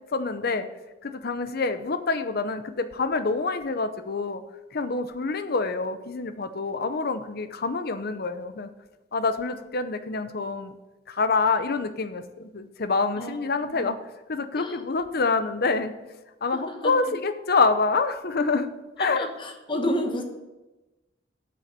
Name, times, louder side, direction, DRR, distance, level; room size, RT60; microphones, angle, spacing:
voice 1, 0.1-0.7 1.0-4.4 4.7-8.7 9.1-10.7 11.1-14.0 14.3-15.9 16.4-18.7 19.0-19.3 19.7-19.8, left 4 dB, 55° left, 10 dB, 0.7 m, -26 dB
voice 2, 13.2-13.9 14.6-14.8 16.5-16.9 19.0-20.2, equal, 25° left, 4 dB, 1.2 m, -31 dB
8.6 x 6.4 x 6.7 m, 1.1 s
head